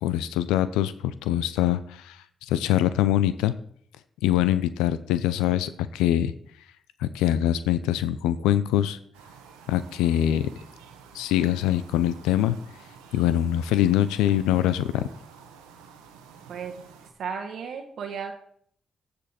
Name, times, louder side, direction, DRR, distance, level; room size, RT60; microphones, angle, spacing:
voice 1, 0.0-3.5 4.2-6.3 7.0-9.0 9.7-10.5 11.1-12.6 13.1-15.1, left 12 dB, 85° left, 14 dB, 0.5 m, -24 dB
sound 1, 9.1-17.1, right 6 dB, 90° right, 1.1 m, -50 dB
voice 2, 16.5-16.9 17.2-18.3, right 6 dB, 70° right, 3 dB, 1.2 m, -34 dB
15.0 x 5.3 x 4.3 m, 0.64 s
hypercardioid pair, 45°, 0 cm